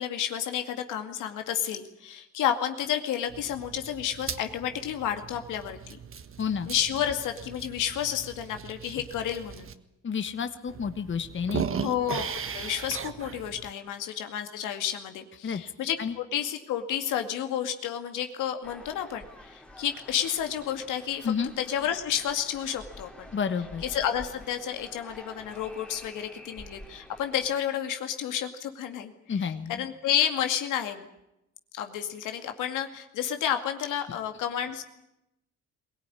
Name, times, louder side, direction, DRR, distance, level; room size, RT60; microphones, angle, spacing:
voice 1, 0.0-6.0 6.7-9.7 11.7-12.2 12.5-23.3 23.8-31.1 31.7-34.8, left 9 dB, 90° left, 6 dB, 2.3 m, -31 dB
sound 1, 3.3-9.7 10.3-10.4 10.7-13.7, right 6 dB, 45° right, 1.5 m, -38 dB
voice 2, 10.0-11.8 15.4-15.6 16.0-16.1 21.2-21.5 23.3-23.8 29.3-29.8, left 6 dB, 40° left, 9 dB, 1.4 m, -30 dB
sound 2, 18.6-27.6, left 1 dB, 5° left, 2.7 m, -48 dB
22.5 x 17.5 x 9.9 m, 0.87 s
cardioid pair, 90°, 30 cm